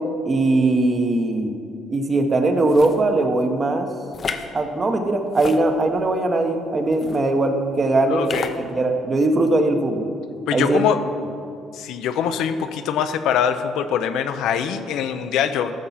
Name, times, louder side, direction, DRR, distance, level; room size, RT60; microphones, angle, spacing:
voice 1, 0.2-1.6 1.9-3.9 4.5-8.5 8.7-10.1 10.5-10.8, right 2 dB, 25° right, 5 dB, 1.0 m, -20 dB
sound 1, 2.7-3.0 4.1-4.5 5.3-6.1 6.9-7.2 8.2-8.6, left 5 dB, 35° left, 0.7 m, -31 dB
voice 2, 8.1-8.5 10.5-11.0 11.7-15.7, left 8 dB, 75° left, 9 dB, 0.7 m, -23 dB
13.5 x 6.9 x 5.7 m, 2.4 s
cardioid pair, 145°, 0 cm